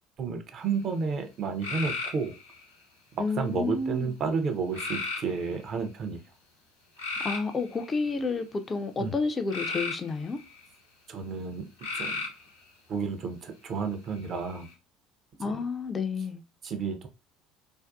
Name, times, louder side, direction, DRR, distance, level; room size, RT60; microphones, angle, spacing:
voice 1, 0.2-2.3 3.1-6.2 9.0-9.1 11.1-11.6 11.9-12.2 12.9-14.7 15.4-15.6 16.6-17.1, right 5 dB, 45° right, 0.5 m, -31 dB
sound 1, 1.6-2.6 4.7-5.6 7.0-8.2 9.5-10.6 11.8-12.5 14.2-14.7, left 4 dB, 90° left, 0.8 m, -34 dB
voice 2, 3.2-4.1 7.2-10.4 15.4-16.4, left 4 dB, 25° left, 0.3 m, -30 dB
2.5 x 2.2 x 2.2 m
figure-of-eight pair, 60°, 0 cm